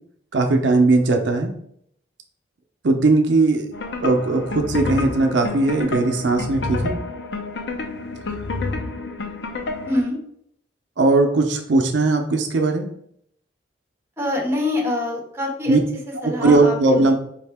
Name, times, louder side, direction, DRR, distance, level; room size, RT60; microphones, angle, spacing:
voice 1, 0.3-1.5 2.8-3.7 4.0-7.0 11.0-12.9 15.7-15.8 16.2-17.1, right 3 dB, 80° right, 4 dB, 0.5 m, -18 dB
sound 1, 3.7-10.0, left 3 dB, 70° left, 0.6 m, -29 dB
voice 2, 14.2-15.8 16.2-17.1, left 1 dB, 15° right, -1 dB, 1.1 m, -25 dB
5.0 x 2.8 x 3.4 m, 0.70 s
head